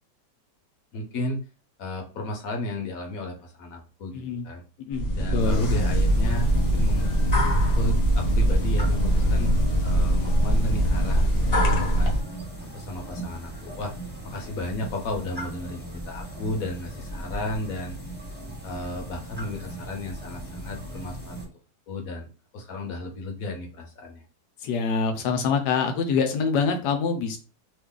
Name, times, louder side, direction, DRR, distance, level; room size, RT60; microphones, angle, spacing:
voice 1, 0.9-1.4 1.8-4.6 5.2-7.1 7.7-9.5 9.8-12.1 12.7-13.9 14.2-17.9 18.6-21.4 21.9-22.3 22.5-24.2, left 1 dB, 65° left, 2 dB, 1.1 m, -34 dB
voice 2, 4.1-4.5 4.8-5.1 5.3-5.6 24.6-27.4, left 5 dB, 85° left, 5 dB, 1.3 m, -25 dB
sound 1, 4.9-12.2, equal, 45° left, 0.9 m, -22 dB
sound 2, 5.4-21.5, right 1 dB, 10° right, 0.8 m, -38 dB
3.1 x 2.4 x 3.6 m, 0.34 s
omnidirectional pair, 1.8 m